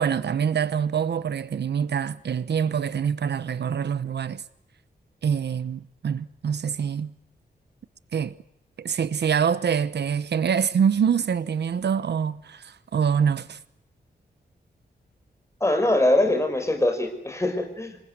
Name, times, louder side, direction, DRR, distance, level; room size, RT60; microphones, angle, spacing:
voice 1, 0.0-4.4 5.2-7.1 8.1-8.3 8.8-13.6, right 7 dB, 75° right, 1.1 m, -25 dB
voice 2, 15.6-18.0, left 1 dB, 15° left, 4.9 m, -23 dB
27.5 x 20.0 x 9.5 m
wide cardioid pair, 140°, 18 cm